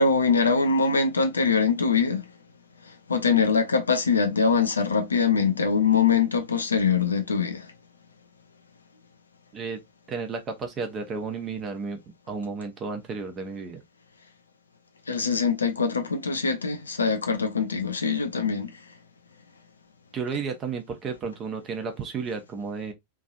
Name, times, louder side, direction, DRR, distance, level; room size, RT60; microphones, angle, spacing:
voice 1, 0.0-2.3 2.8-7.7 15.1-18.8, left 5 dB, 75° left, 0.6 m, -23 dB
voice 2, 10.1-12.0 12.3-13.8 20.1-22.9, right 5 dB, 25° right, 0.9 m, -32 dB
3.2 x 2.6 x 2.3 m
figure-of-eight pair, 90°, 0 cm